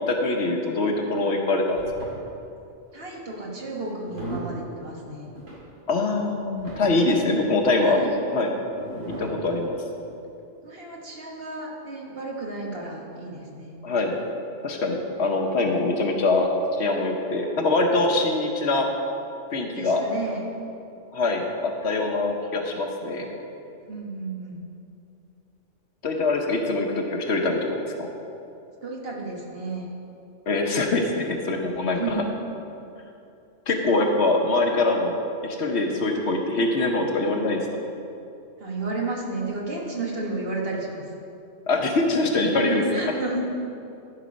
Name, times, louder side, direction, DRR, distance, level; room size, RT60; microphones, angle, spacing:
voice 1, 0.1-1.8 5.9-8.0 8.3-8.5 9.2-9.8 13.8-14.2 14.6-16.5 16.8-18.9 19.5-20.0 21.1-23.3 26.0-28.1 30.5-32.2 33.7-35.1 35.4-37.6 41.7-42.8, left 2 dB, 60° left, 2 dB, 1.1 m, -23 dB
sound 1, 1.7-2.2 3.1-3.4 3.9-4.5 5.4-5.6 6.1-6.2 6.5-7.0 7.8-7.9 8.7-9.4 9.9-10.0, right 1 dB, 75° right, 2.7 m, -37 dB
voice 2, 2.9-5.3 7.2-7.5 7.8-8.2 10.6-13.8 19.7-20.5 23.9-24.6 28.8-29.9 31.9-32.4 38.6-41.0 42.5-43.5, right 3 dB, 50° right, -2 dB, 1.6 m, -32 dB
13.0 x 5.2 x 5.1 m, 2.7 s
omnidirectional pair, 1.3 m